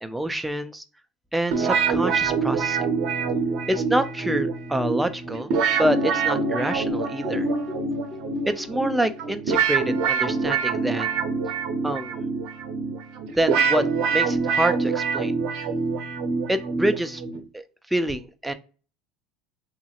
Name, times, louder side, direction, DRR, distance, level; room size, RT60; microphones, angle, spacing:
voice 1, 0.0-0.8 1.3-2.9 3.7-7.5 8.5-11.2 11.8-12.3 13.4-15.3 16.5-17.2 17.5-17.6 17.9-18.5, right 1 dB, 5° right, 9 dB, 0.4 m, -26 dB
sound 1, 1.5-17.4, right 5 dB, 60° right, 0.6 m, -25 dB
sound 2, 5.8-9.5, equal, 15° left, 0.9 m, -34 dB
2.9 x 2.7 x 2.3 m, 0.35 s
supercardioid pair, 95°, 0 cm